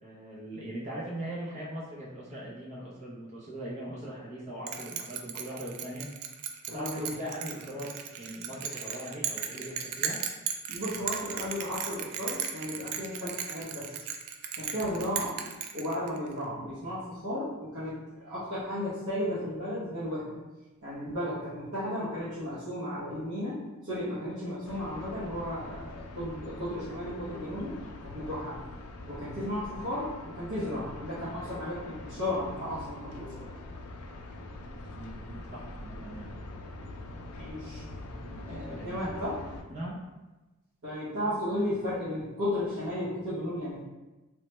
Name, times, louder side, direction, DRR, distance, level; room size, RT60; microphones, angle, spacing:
voice 1, 0.0-6.4 6.7-10.2 34.9-36.3 38.3-39.0 39.7-40.0, right 1 dB, 30° right, -6 dB, 0.5 m, -40 dB
Bell, 4.7-16.3, right 8 dB, 85° right, 0.3 m, -36 dB
voice 2, 6.7-7.2 10.7-14.0 14.6-15.5 15.7-20.4 20.8-27.7 28.0-28.6 29.1-33.3 37.4-38.2 38.5-39.4 40.8-43.8, left 1 dB, 65° right, -12 dB, 0.8 m, -34 dB
sound 1, 24.6-39.6, left 2 dB, 75° left, 0.4 m, -43 dB
3.1 x 2.1 x 3.0 m, 1.1 s
head